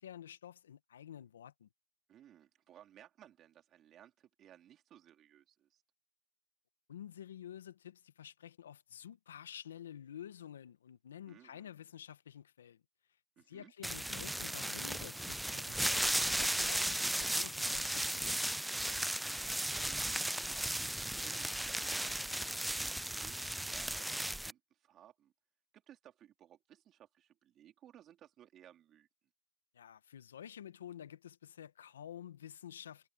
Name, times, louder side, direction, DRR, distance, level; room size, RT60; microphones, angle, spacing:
voice 1, 0.0-1.7 6.9-12.8 13.5-18.5 29.7-33.1, left 10 dB, 90° left, 1.2 m, -50 dB
voice 2, 2.1-5.8 11.3-11.7 13.4-13.7 19.8-22.2 22.8-25.3 25.7-29.1, right 11 dB, 30° right, 3.5 m, -60 dB
sound 1, 13.8-24.5, right 1 dB, ahead, 0.3 m, -35 dB
sound 2, 17.8-18.8 19.2-19.4, left 28 dB, 50° left, 5.1 m, -57 dB
hypercardioid pair, 135°, 0 cm